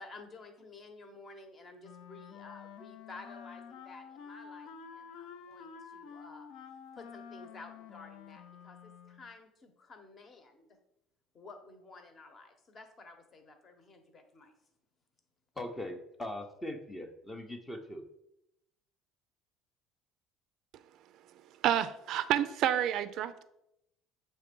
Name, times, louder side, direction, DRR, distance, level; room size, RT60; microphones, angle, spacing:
voice 1, 0.0-6.5 6.9-10.8 11.3-14.5, left 3 dB, 30° left, 6 dB, 1.1 m, -52 dB
Wind instrument woodwind instrument, 1.8-9.3, left 6 dB, 60° left, 0.6 m, -49 dB
voice 2, 15.6-18.0, left 1 dB, 15° left, 6 dB, 0.7 m, -40 dB
voice 3, 21.6-23.4, right 11 dB, 60° right, 14 dB, 0.4 m, -29 dB
7.0 x 3.3 x 5.2 m, 0.82 s
cardioid pair, 135°, 0 cm